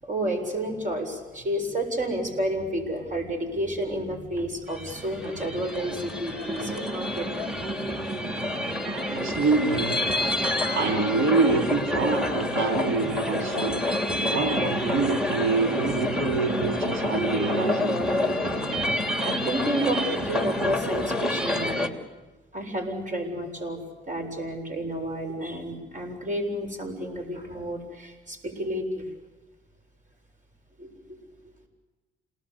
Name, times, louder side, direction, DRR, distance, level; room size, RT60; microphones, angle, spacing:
voice 1, 0.0-7.4 18.6-21.9 22.5-23.8 24.1-29.1 30.8-31.2, right 1 dB, 40° right, 4 dB, 7.4 m, -31 dB
sound 1, 4.7-21.9, left 1 dB, 5° right, 3.0 m, -28 dB
voice 2, 9.1-10.1 10.7-13.8 14.3-18.0, right 3 dB, 85° right, 3 dB, 3.2 m, -26 dB
28.5 x 19.0 x 8.5 m, 1.2 s
cardioid pair, 90°, 20 cm